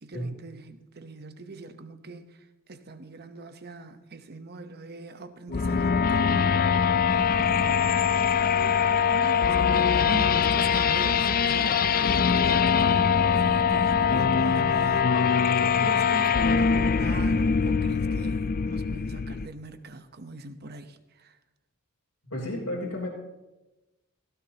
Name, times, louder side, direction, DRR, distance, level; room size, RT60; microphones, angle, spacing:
voice 1, 0.0-2.4 2.7-6.8 7.1-7.9 8.3-21.4, right 3 dB, 50° right, 1.0 m, -41 dB
sound 1, 5.5-19.5, left 6 dB, 45° left, 0.5 m, -23 dB
voice 2, 22.3-23.1, left 1 dB, 85° left, 3.3 m, -32 dB
17.0 x 15.5 x 2.9 m
head